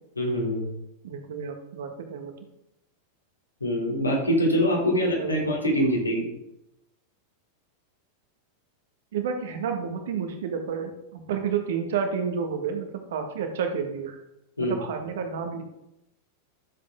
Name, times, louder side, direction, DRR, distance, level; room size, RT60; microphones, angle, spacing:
voice 1, 0.2-0.7 3.6-6.2 14.6-14.8, equal, 80° left, -3 dB, 3.3 m, -24 dB
voice 2, 1.0-2.3 4.8-5.5 9.1-14.2 14.6-15.6, right 6 dB, 60° right, 5 dB, 1.7 m, -30 dB
12.5 x 7.5 x 3.8 m, 0.86 s
figure-of-eight pair, 90°, 0 cm